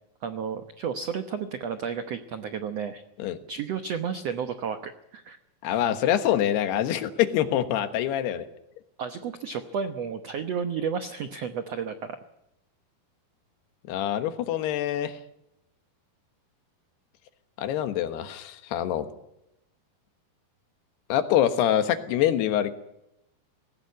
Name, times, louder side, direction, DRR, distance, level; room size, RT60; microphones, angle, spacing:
voice 1, 0.2-3.0 3.5-5.4 9.0-12.2, right 6 dB, 90° right, 9 dB, 1.4 m, -32 dB
voice 2, 5.6-8.5 13.9-15.2 17.6-19.1 21.1-22.7, left 11 dB, 85° left, 10 dB, 3.4 m, -25 dB
19.0 x 18.0 x 9.5 m, 0.85 s
omnidirectional pair, 4.6 m